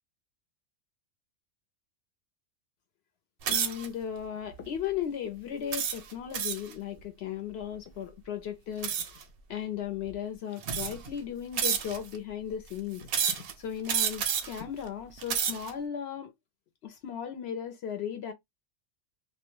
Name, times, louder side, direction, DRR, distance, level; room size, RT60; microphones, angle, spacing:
sound 1, 3.4-3.9 4.5-4.8 5.7-6.7 8.8-9.2 10.1-10.2 10.6-11.1 11.6-12.2 13.1-13.5 13.9-14.6 15.1-15.7, right 7 dB, 60° right, 0.6 m, -30 dB
voice 1, 3.5-9.2 9.5-16.3 16.8-18.3, left 9 dB, 65° left, 0.7 m, -36 dB
2.3 x 2.2 x 2.9 m
omnidirectional pair, 1.4 m